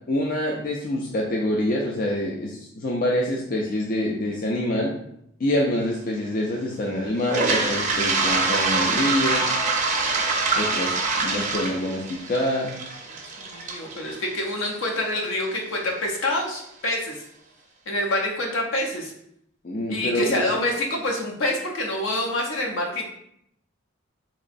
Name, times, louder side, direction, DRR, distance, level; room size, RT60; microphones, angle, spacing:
voice 1, 0.1-4.9 5.4-9.5 10.5-12.7 19.6-20.4, left 1 dB, 45° left, -1 dB, 0.4 m, -26 dB
Toilet flush, 7.2-15.1, right 3 dB, 35° right, 0.5 m, -25 dB
voice 2, 13.4-17.2 17.9-19.1 19.9-23.1, left 1 dB, 70° left, 0 dB, 0.8 m, -26 dB
3.8 x 3.0 x 2.5 m, 0.73 s
head